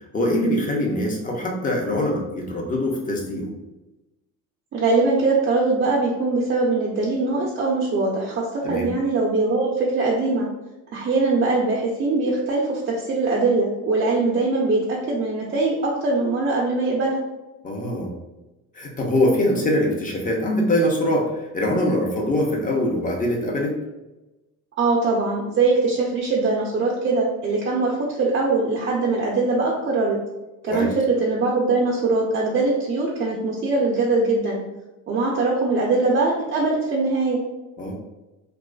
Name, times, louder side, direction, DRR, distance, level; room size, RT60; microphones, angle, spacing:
voice 1, 0.1-3.5 8.6-8.9 17.6-18.1 18.7-21.3 21.5-23.8 30.7-30.9 37.8-37.9, left 1 dB, 25° left, 0 dB, 0.5 m, -23 dB
voice 2, 4.7-10.5 10.9-17.2 24.8-30.2 30.6-34.6 35.1-37.4, right 3 dB, 30° right, -3 dB, 0.4 m, -22 dB
2.4 x 2.3 x 2.2 m, 1.0 s
cardioid pair, 100°, 37 cm